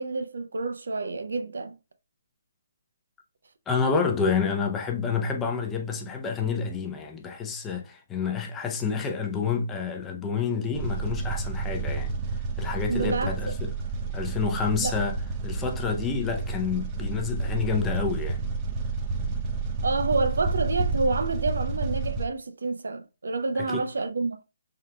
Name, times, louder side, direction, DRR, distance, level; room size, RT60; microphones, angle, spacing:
voice 1, 0.0-1.8 12.9-13.5 14.8-15.0 19.8-24.4, right 3 dB, 65° right, 0.6 m, -28 dB
voice 2, 3.7-12.1 12.6-13.7 14.1-15.2 15.4-18.4 23.6-23.9, left 5 dB, 15° left, 0.6 m, -28 dB
sound 1, 10.7-22.3, right 4 dB, 25° right, 0.6 m, -30 dB
5.4 x 3.7 x 2.2 m
figure-of-eight pair, 140°, 0 cm